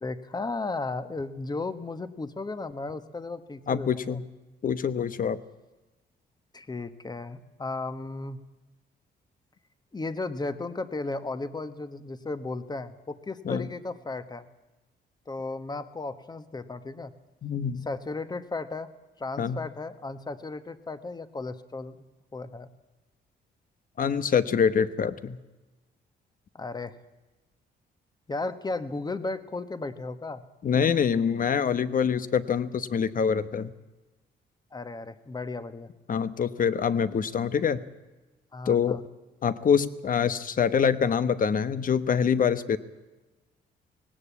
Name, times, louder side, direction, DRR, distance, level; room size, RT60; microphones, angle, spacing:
voice 1, 0.0-4.2 6.5-8.4 9.9-14.5 15.3-17.1 17.8-18.9 19.2-22.0 22.3-22.7 26.5-27.0 28.3-30.4 34.7-35.9 38.5-39.0, left 3 dB, 20° left, 11 dB, 1.3 m, -35 dB
voice 2, 3.7-4.2 4.6-5.4 13.4-13.7 17.4-17.9 19.4-19.6 24.0-25.4 30.6-33.7 36.1-37.8 38.7-39.0 39.4-42.8, left 7 dB, 45° left, 13 dB, 1.1 m, -25 dB
19.0 x 17.5 x 8.4 m, 1.1 s
cardioid pair, 105°, 19 cm